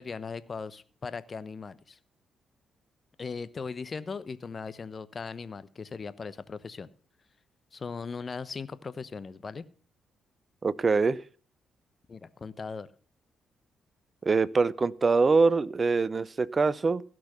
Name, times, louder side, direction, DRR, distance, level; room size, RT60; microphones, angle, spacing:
voice 1, 0.0-2.0 3.2-6.9 7.7-9.7 12.1-12.9, left 5 dB, 40° left, 1.0 m, -38 dB
voice 2, 10.6-11.2 14.2-17.0, right 4 dB, 40° right, 0.7 m, -24 dB
16.5 x 6.2 x 7.0 m
hypercardioid pair, 40°, 0 cm